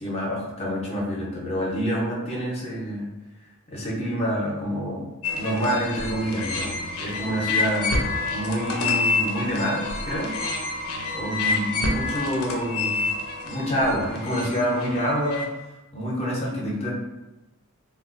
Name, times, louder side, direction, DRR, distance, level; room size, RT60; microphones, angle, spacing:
voice 1, 0.0-3.1 3.7-7.9 8.3-10.3 11.1-12.9 13.4-15.5 15.9-16.9, equal, 30° left, -3 dB, 0.5 m, -27 dB
sound 1, 5.2-15.5, left 3 dB, 90° left, 0.5 m, -28 dB
3.2 x 2.2 x 2.4 m, 1.0 s
head